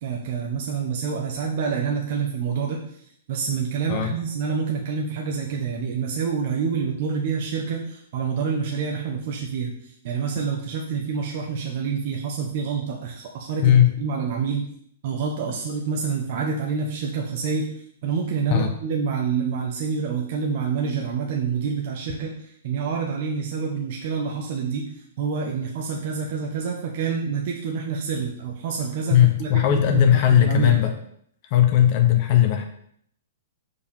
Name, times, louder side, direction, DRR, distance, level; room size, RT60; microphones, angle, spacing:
voice 1, 0.0-14.7 15.0-30.7, right 6 dB, 50° right, 0 dB, 1.0 m, -27 dB
voice 2, 29.1-30.9 31.5-32.6, left 11 dB, 40° left, 5 dB, 0.9 m, -17 dB
4.9 x 4.8 x 5.5 m, 0.67 s
hypercardioid pair, 150°, 0 cm